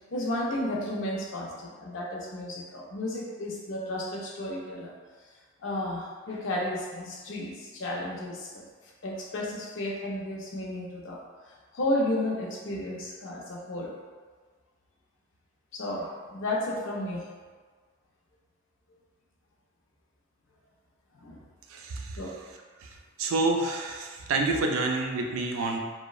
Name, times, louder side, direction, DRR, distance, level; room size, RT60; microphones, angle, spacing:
voice 1, 0.1-4.9 5.6-8.6 9.0-11.2 11.7-13.9 15.7-17.3 21.2-21.4 22.2-22.4, left 1 dB, 60° left, -2 dB, 0.5 m, -32 dB
voice 2, 21.7-22.2 22.8-22.9 23.2-25.8, right 2 dB, 85° right, 2 dB, 0.4 m, -28 dB
3.0 x 2.1 x 2.3 m, 1.5 s
head